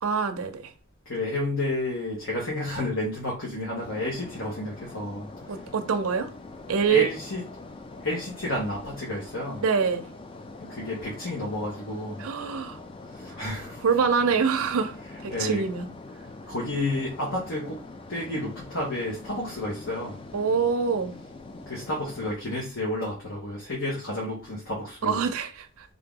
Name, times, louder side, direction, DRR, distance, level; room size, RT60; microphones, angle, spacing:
voice 1, 0.0-0.7 5.5-6.3 6.7-7.1 9.6-10.1 12.2-12.8 13.8-15.0 15.2-15.9 20.3-21.1 25.0-25.9, right 5 dB, 80° right, 0.5 m, -25 dB
voice 2, 1.0-5.3 6.9-7.4 8.0-9.6 10.6-12.3 13.1-14.0 15.0-15.7 16.5-17.8 18.1-20.2 21.5-25.3, left 1 dB, 65° left, 1.2 m, -31 dB
sound 1, 3.8-22.4, left 2 dB, 25° left, 0.3 m, -43 dB
3.6 x 2.8 x 3.7 m
head